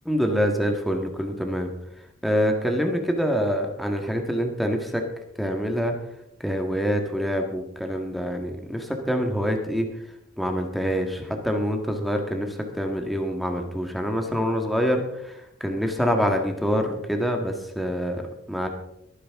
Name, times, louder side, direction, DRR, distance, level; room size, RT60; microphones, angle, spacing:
voice 1, 0.0-1.7 2.2-5.0 5.4-5.9 6.4-9.9 10.4-12.5 12.7-15.3 15.6-18.2 18.5-18.7, equal, ahead, 3 dB, 1.6 m, -25 dB
22.5 x 9.8 x 3.6 m, 0.78 s
head